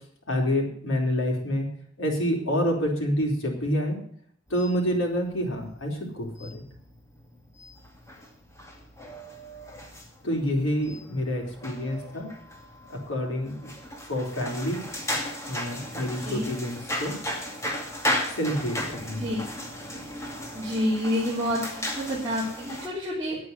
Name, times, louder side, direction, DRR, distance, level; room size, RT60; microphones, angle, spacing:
voice 1, 0.3-1.7 2.0-4.0 4.5-6.6 10.2-12.3 12.9-13.7 14.1-14.8 15.5-17.1 18.4-19.4, equal, 90° left, -1 dB, 4.4 m, -28 dB
sound 1, 4.5-22.9, left 1 dB, 15° left, 2.3 m, -36 dB
voice 2, 20.5-23.4, equal, 20° right, -7 dB, 3.4 m, -28 dB
9.5 x 9.2 x 9.6 m, 0.62 s
head